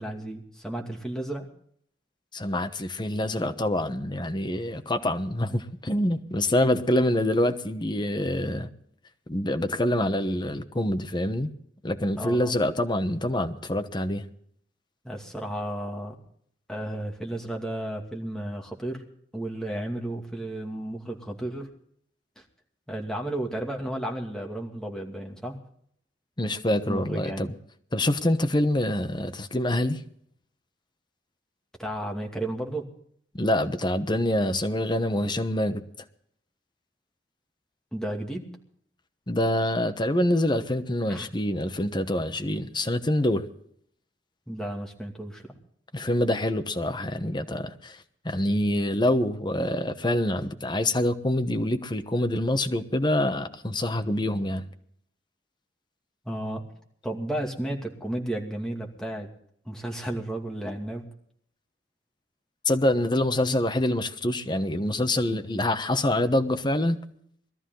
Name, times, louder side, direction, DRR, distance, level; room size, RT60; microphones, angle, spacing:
voice 1, 0.0-1.5 12.2-12.5 15.0-16.2 16.7-19.0 19.3-21.7 22.4-22.5 22.9-25.6 26.9-27.4 31.8-32.9 37.9-38.4 41.1-41.3 44.5-45.6 56.2-56.6 57.0-59.3 59.6-61.1, right 1 dB, 5° left, 2.4 m, -33 dB
voice 2, 2.3-8.7 9.3-11.5 11.8-14.3 26.4-27.5 27.9-30.0 33.3-35.8 39.3-43.5 45.9-48.0 48.2-54.7 62.6-67.0, left 1 dB, 25° left, 1.1 m, -26 dB
21.0 x 13.5 x 3.9 m
head